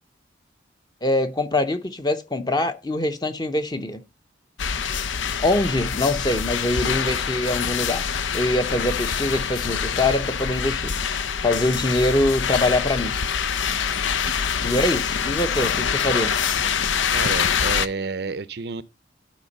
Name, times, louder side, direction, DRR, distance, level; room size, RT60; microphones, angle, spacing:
voice 1, 1.0-4.0 5.4-8.1 8.3-10.9 11.4-13.2 14.6-16.4, left 1 dB, 20° left, 0.8 m, -23 dB
sound 1, 4.6-17.9, left 7 dB, 85° left, 0.7 m, -25 dB
voice 2, 17.1-18.8, right 4 dB, 60° right, 0.6 m, -30 dB
12.0 x 4.4 x 5.3 m
head